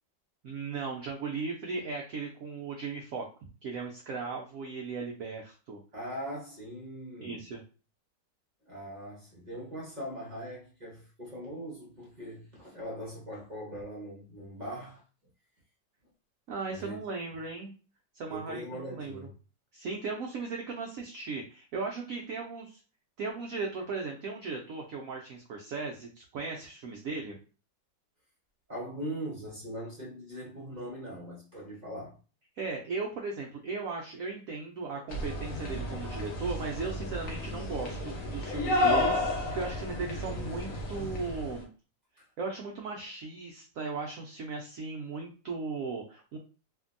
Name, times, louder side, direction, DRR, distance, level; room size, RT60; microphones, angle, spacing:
voice 1, 0.4-3.3 3.6-5.8 7.2-7.6 16.5-17.7 18.1-19.3 19.7-22.8 23.2-27.4 32.6-41.7 42.4-46.4, right 4 dB, 85° right, 0.7 m, -37 dB
voice 2, 5.9-7.4 8.6-15.0 16.7-17.0 18.3-19.3 28.7-32.2 40.2-40.8 42.2-42.3, equal, 40° right, 0.6 m, -41 dB
sound 1, 35.1-41.6, left 1 dB, 55° left, 1.1 m, -32 dB
2.7 x 2.6 x 2.5 m
omnidirectional pair, 2.0 m